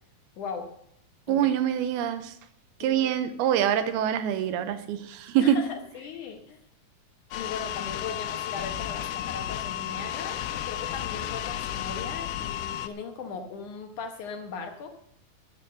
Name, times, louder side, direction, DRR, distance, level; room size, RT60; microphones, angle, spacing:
voice 1, 0.4-0.7 1.3-1.5 2.8-3.0 5.4-6.6 7.3-14.9, left 5 dB, 65° left, 5 dB, 2.1 m, -38 dB
voice 2, 1.3-2.4 2.8-5.6, right 10 dB, 85° right, 10 dB, 2.8 m, -25 dB
sound 1, 7.3-12.9, left 11 dB, 85° left, 2.7 m, -33 dB
12.5 x 7.0 x 7.6 m, 0.73 s
omnidirectional pair, 4.5 m